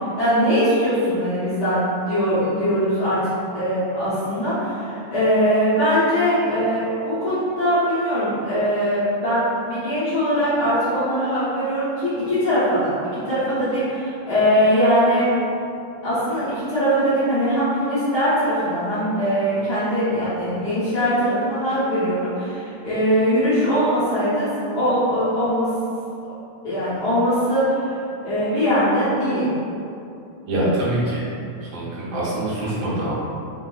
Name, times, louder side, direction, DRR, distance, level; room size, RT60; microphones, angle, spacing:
voice 1, 0.2-15.3 16.0-25.7 26.6-27.8 28.2-29.5, equal, 55° left, -14 dB, 1.0 m, -21 dB
voice 2, 30.5-31.2 31.7-33.1, right 1 dB, 70° right, -8 dB, 1.5 m, -24 dB
4.9 x 2.1 x 3.9 m, 2.6 s
omnidirectional pair, 3.6 m